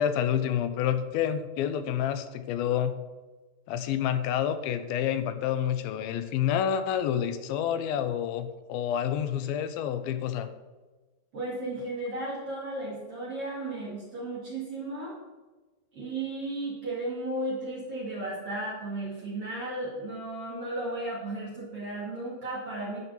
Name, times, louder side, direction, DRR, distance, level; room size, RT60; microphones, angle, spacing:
voice 1, 0.0-2.9 3.7-10.5, left 9 dB, 90° left, 10 dB, 2.6 m, -28 dB
voice 2, 11.3-15.2 15.9-23.0, right 2 dB, 45° right, -6 dB, 2.8 m, -34 dB
10.5 x 4.5 x 6.7 m, 1.2 s
omnidirectional pair, 4.1 m